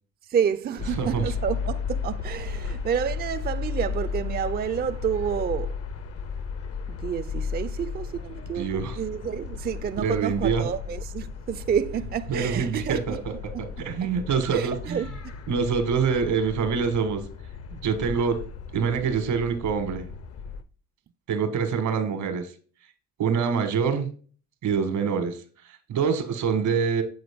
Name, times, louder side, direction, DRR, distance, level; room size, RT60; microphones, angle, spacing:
voice 1, 0.3-5.8 6.9-13.2 13.5-13.6 14.0-14.1 14.5-15.1, right 8 dB, 35° right, 0.4 m, -29 dB
sound 1, 0.8-20.6, left 5 dB, 55° left, 0.7 m, -35 dB
voice 2, 1.0-1.3 8.5-9.0 10.0-10.7 12.3-15.0 15.5-17.3 17.7-18.4 18.7-20.1 21.3-22.5 23.2-24.1 24.6-27.0, right 6 dB, 80° right, 1.4 m, -26 dB
7.8 x 4.1 x 3.5 m
cardioid pair, 90°, 30 cm